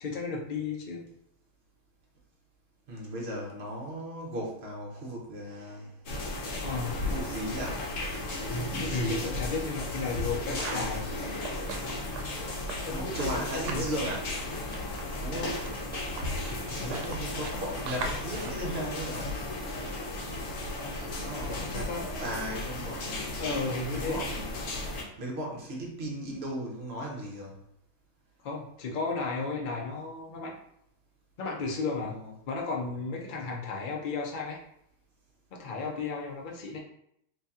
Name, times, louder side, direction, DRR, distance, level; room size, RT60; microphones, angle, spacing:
voice 1, 0.0-1.1 6.6-7.0 8.8-11.0 12.8-13.9 16.5-17.0 21.3-22.1 23.4-24.2 28.4-30.6 31.4-32.2 32.5-34.6 35.5-36.8, left 4 dB, 85° left, -1 dB, 0.4 m, -34 dB
voice 2, 2.9-5.9 7.0-7.8 10.4-11.2 12.9-14.3 15.2-15.6 16.7-19.3 21.2-23.6 23.9-24.5 25.2-27.6 32.0-32.3, right 1 dB, 50° right, -2 dB, 0.9 m, -37 dB
sound 1, 6.1-25.0, left 2 dB, 60° left, 1.1 m, -35 dB
sound 2, 9.9-14.0 14.2-19.6, right 4 dB, 75° right, 1.1 m, -42 dB
3.0 x 2.8 x 3.5 m, 0.73 s
omnidirectional pair, 1.7 m